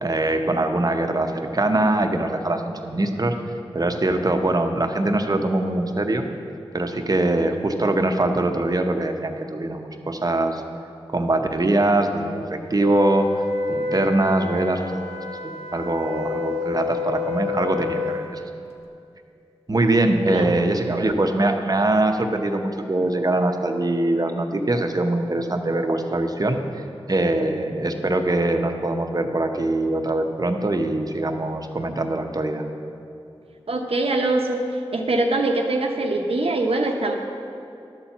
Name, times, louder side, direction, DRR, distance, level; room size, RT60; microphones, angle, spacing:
voice 1, 0.0-3.4 3.7-6.3 6.7-10.6 11.1-13.3 13.7-14.8 15.4-18.4 19.7-32.6, right 2 dB, 40° right, 5 dB, 0.8 m, -23 dB
Wind instrument woodwind instrument, 12.8-18.3, left 4 dB, 80° left, 0.9 m, -28 dB
voice 2, 33.7-34.6 34.9-37.2, right 2 dB, 75° right, 2 dB, 0.8 m, -23 dB
11.5 x 4.3 x 7.0 m, 2.6 s
cardioid pair, 45°, 10 cm